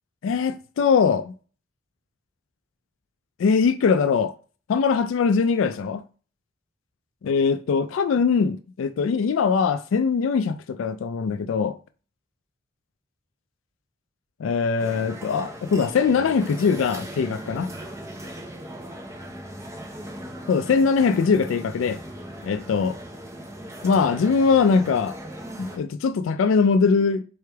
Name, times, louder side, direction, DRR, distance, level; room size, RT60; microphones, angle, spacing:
voice 1, 0.2-1.3 3.4-4.3 4.7-6.0 7.2-11.8 14.4-17.7 20.5-22.0 22.4-23.0 23.8-25.1 25.6-27.2, left 5 dB, 85° left, 0.3 m, -21 dB
sound 1, 14.8-25.8, right 1 dB, 15° right, 0.6 m, -39 dB
4.3 x 3.3 x 3.4 m
head